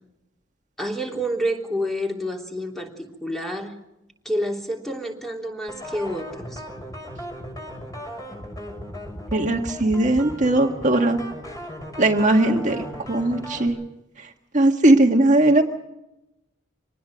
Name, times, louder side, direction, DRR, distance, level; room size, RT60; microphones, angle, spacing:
voice 1, 0.8-3.8 4.2-6.6, equal, ahead, 1 dB, 3.3 m, -28 dB
sound 1, 5.7-13.7, equal, 20° left, 6.4 m, -37 dB
voice 2, 9.3-11.2 12.0-13.8 14.2-14.3 14.5-15.6, right 2 dB, 40° right, 2 dB, 1.7 m, -19 dB
26.0 x 19.5 x 6.5 m, 0.91 s
head